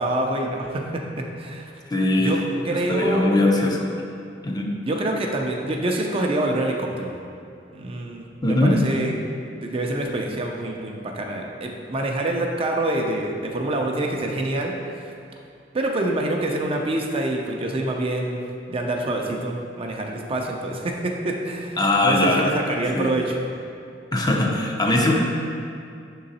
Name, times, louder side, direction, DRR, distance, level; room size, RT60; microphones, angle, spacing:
voice 1, 0.0-1.7 2.2-2.4 2.6-3.4 4.8-7.1 7.7-9.1 9.6-14.8 15.0-15.1 15.7-18.4 18.7-23.4, right 1 dB, 30° right, 1 dB, 0.5 m, -26 dB
voice 2, 1.9-2.4 2.7-3.9 4.4-4.7 8.4-8.8 21.8-22.5 22.9-23.1 24.1-25.1, left 1 dB, 20° left, 0 dB, 0.5 m, -20 dB
6.1 x 3.8 x 4.1 m, 2.4 s
head